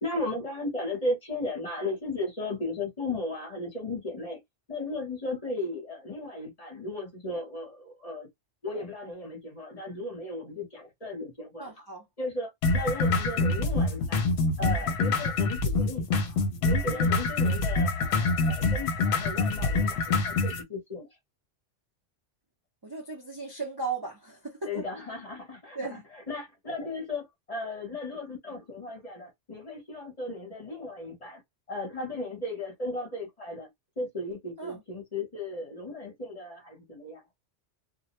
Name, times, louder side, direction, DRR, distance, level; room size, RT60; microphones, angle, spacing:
voice 1, 0.0-4.4 4.7-8.3 8.6-11.9 12.2-14.3 14.6-21.1 24.7-26.0 26.3-31.4 31.7-33.7 34.0-37.2, left 2 dB, 35° left, 0.9 m, -35 dB
voice 2, 11.6-12.1 16.9-17.1 22.8-24.8 25.7-26.0 34.6-34.8, right 4 dB, 30° right, 0.5 m, -36 dB
sound 1, 12.6-20.6, left 3 dB, 65° left, 0.8 m, -26 dB
2.3 x 2.0 x 2.9 m
omnidirectional pair, 1.2 m